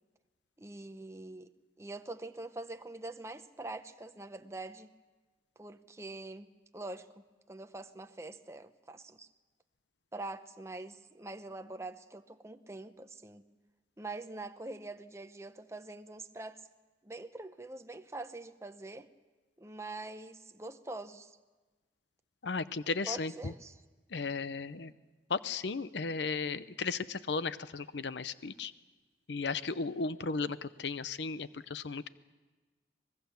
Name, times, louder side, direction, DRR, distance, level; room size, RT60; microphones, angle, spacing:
voice 1, 0.6-1.5 1.8-4.9 5.6-9.3 10.1-13.5 14.0-16.7 17.0-19.1 19.6-21.4 23.1-23.8, right 2 dB, 15° right, 0.7 m, -44 dB
voice 2, 22.4-23.5 24.1-24.9 25.3-28.7 29.3-32.1, left 4 dB, 70° left, 0.7 m, -35 dB
24.5 x 20.5 x 7.0 m
head